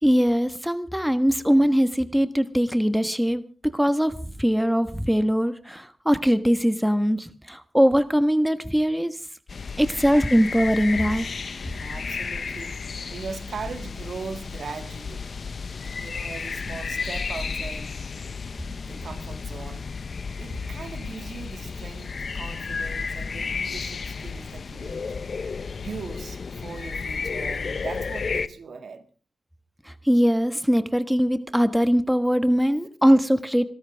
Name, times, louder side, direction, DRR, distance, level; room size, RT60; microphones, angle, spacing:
voice 1, 0.0-9.2 9.8-11.3 30.0-33.6, equal, 5° right, 1.4 m, -21 dB
sound 1, 9.5-28.5, left 5 dB, 65° left, 0.8 m, -32 dB
voice 2, 11.8-15.3 15.9-17.9 18.8-19.9 20.4-25.4 25.8-29.1, right 5 dB, 90° right, 1.9 m, -39 dB
27.0 x 13.0 x 3.5 m
wide cardioid pair, 85°, 0 cm